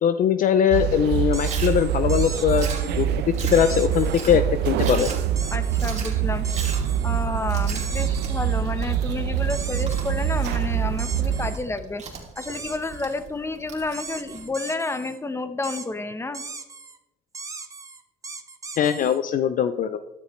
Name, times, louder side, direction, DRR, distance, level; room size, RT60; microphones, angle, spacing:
voice 1, 0.0-2.7 3.0-3.1 3.5-5.1 18.8-20.0, left 9 dB, 55° left, 11 dB, 0.5 m, -21 dB
sound 1, 0.7-11.6, right 9 dB, 80° right, 0.8 m, -25 dB
sound 2, 1.3-1.7 2.1-3.1 3.5-4.4 5.0-5.9 6.4-7.3 7.7-8.6 9.5-10.5 11.0-11.6 12.4-13.2 13.9-15.2 15.6-15.9 16.3-17.0 17.3-19.2, right 4 dB, 20° right, 0.9 m, -38 dB
Chewing mastication, 1.4-14.4, right 5 dB, 40° right, 2.6 m, -39 dB
voice 2, 5.5-6.5 7.0-12.0 12.4-16.4 19.0-19.1, left 3 dB, 15° left, 10 dB, 1.0 m, -30 dB
13.5 x 12.0 x 3.2 m, 0.97 s
cardioid pair, 110°, 17 cm